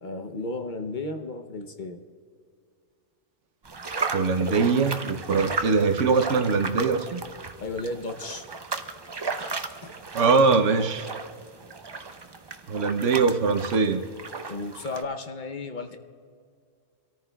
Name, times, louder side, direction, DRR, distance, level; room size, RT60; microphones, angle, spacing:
voice 1, 0.0-2.0 7.6-8.5 9.8-9.9 14.5-16.0, left 2 dB, 45° left, 6 dB, 0.8 m, -34 dB
sound 1, 3.6-15.0, right 4 dB, 45° right, 0.3 m, -35 dB
voice 2, 4.1-7.2 10.1-11.1 12.7-14.0, right 4 dB, 70° right, 8 dB, 1.1 m, -22 dB
25.5 x 13.5 x 2.3 m, 2.2 s
omnidirectional pair, 1.3 m